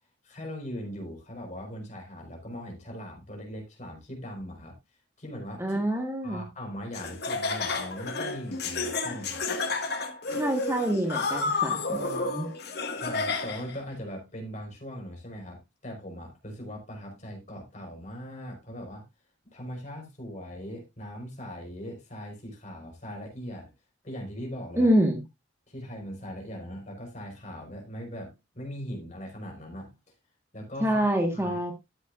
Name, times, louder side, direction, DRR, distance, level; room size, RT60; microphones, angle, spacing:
voice 1, 0.2-4.7 5.2-9.4 13.0-19.0 19.5-23.7 24.0-24.9 25.7-29.9 30.5-31.6, equal, 40° left, 4.5 m, -40 dB
voice 2, 5.6-6.4 10.3-12.5 24.8-25.2 30.8-31.7, right 1 dB, 15° right, 1.4 m, -26 dB
Laughter, 6.9-13.8, left 3 dB, 55° left, 1.8 m, -31 dB
13.0 x 8.0 x 2.5 m
head